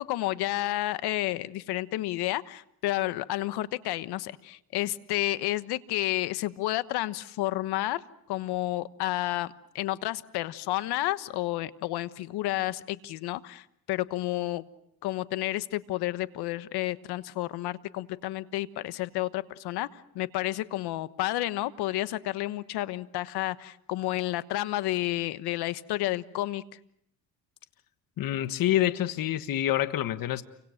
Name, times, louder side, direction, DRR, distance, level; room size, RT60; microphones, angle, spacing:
voice 1, 0.0-8.0 8.3-14.6 15.0-26.6, left 16 dB, 75° left, 14 dB, 1.3 m, -31 dB
voice 2, 28.2-30.4, left 13 dB, 60° left, 11 dB, 1.5 m, -27 dB
30.0 x 25.0 x 6.5 m, 0.73 s
cardioid pair, 105°, 39 cm